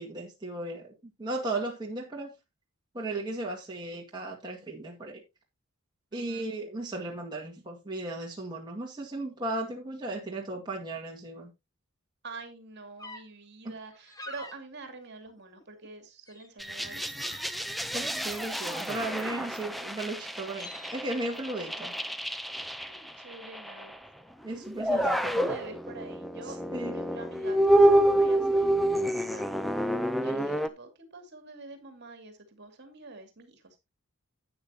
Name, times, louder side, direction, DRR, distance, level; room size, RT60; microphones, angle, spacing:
voice 1, 0.0-2.3 2.9-5.2 6.1-11.5 13.6-13.8 17.9-21.9 24.4-25.5 26.7-27.0, right 2 dB, 20° right, 1.9 m, -36 dB
voice 2, 6.1-6.5 12.2-17.3 21.5-21.9 23.0-23.9 24.8-29.4 30.2-33.8, right 3 dB, 50° right, 2.4 m, -46 dB
sound 1, 13.0-13.2 13.9-14.6 15.1-15.9 16.3-16.5 16.9-17.7 18.1-19.3 19.9-20.0 20.3-21.0, left 2 dB, 15° left, 1.2 m, -47 dB
sound 2, 16.6-24.0 24.6-30.7, right 1 dB, ahead, 0.5 m, -28 dB
12.0 x 8.7 x 2.8 m
head